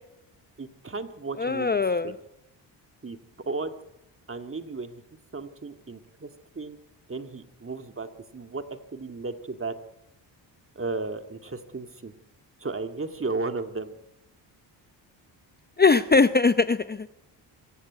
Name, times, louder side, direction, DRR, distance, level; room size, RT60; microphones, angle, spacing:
voice 1, 0.6-2.1 3.0-3.2 3.5-3.7 4.3-5.0 5.3-6.3 6.5-6.8 7.1-8.7 8.9-9.8 10.8-12.1 12.6-13.9, right 3 dB, 25° right, 7 dB, 2.0 m, -34 dB
voice 2, 1.4-2.1 15.8-17.1, left 4 dB, 20° left, 12 dB, 0.7 m, -21 dB
24.0 x 15.0 x 9.4 m, 0.93 s
cardioid pair, 65°, 46 cm